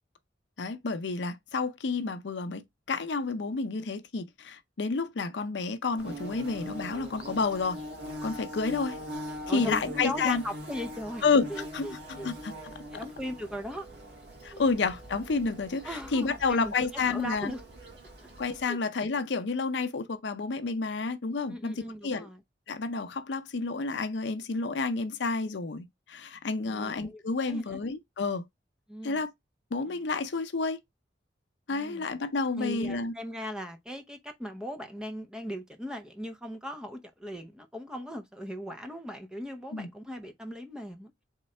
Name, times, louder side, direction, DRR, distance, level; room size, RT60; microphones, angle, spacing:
voice 1, 0.6-2.6 2.9-7.8 8.2-9.0 9.5-10.4 11.2-11.5 11.7-12.5 14.4-17.5 18.4-21.7 22.0-22.3 22.7-28.4 29.0-29.3 29.7-30.8 31.7-33.1 39.7-39.9, left 4 dB, 70° left, 0.6 m, -30 dB
Bird / Buzz, 6.0-18.6, equal, 65° right, 1.6 m, -42 dB
voice 2, 9.5-11.2 11.5-12.3 12.9-13.9 14.5-14.6 15.8-17.6 18.2-18.3 18.7-18.8 21.5-22.4 26.6-27.2 27.5-27.8 28.9-29.2 29.9-30.0 31.7-32.0 32.6-41.1, equal, 5° right, 0.6 m, -39 dB
3.7 x 3.2 x 4.2 m
head